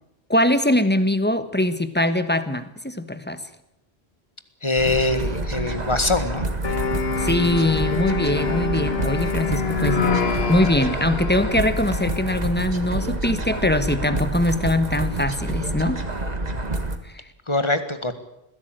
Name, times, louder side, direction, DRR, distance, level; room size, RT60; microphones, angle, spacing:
voice 1, 0.3-3.4 7.2-10.0 10.5-16.0 17.1-17.2, left 1 dB, 10° left, 11 dB, 1.3 m, -22 dB
voice 2, 4.6-6.4 17.5-18.1, left 2 dB, 25° left, 10 dB, 1.8 m, -23 dB
sound 1, 4.8-17.0, right 2 dB, 40° right, 1.8 m, -28 dB
sound 2, 6.6-12.6, left 5 dB, 70° left, 1.7 m, -26 dB
21.0 x 16.0 x 8.9 m, 0.83 s
omnidirectional pair, 1.1 m